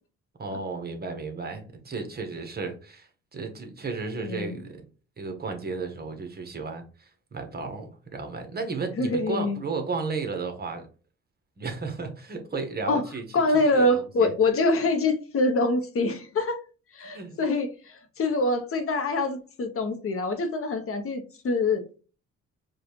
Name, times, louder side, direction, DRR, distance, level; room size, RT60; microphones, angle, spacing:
voice 1, 0.4-4.8 5.2-10.9 11.6-13.2 13.7-14.3 17.0-17.4, right 4 dB, 30° right, 1.0 m, -34 dB
voice 2, 4.2-4.6 9.0-9.6 12.9-13.0 13.3-16.6 16.9-21.8, left 2 dB, 50° left, 0.8 m, -25 dB
4.9 x 2.3 x 3.0 m
cardioid pair, 90°, 30 cm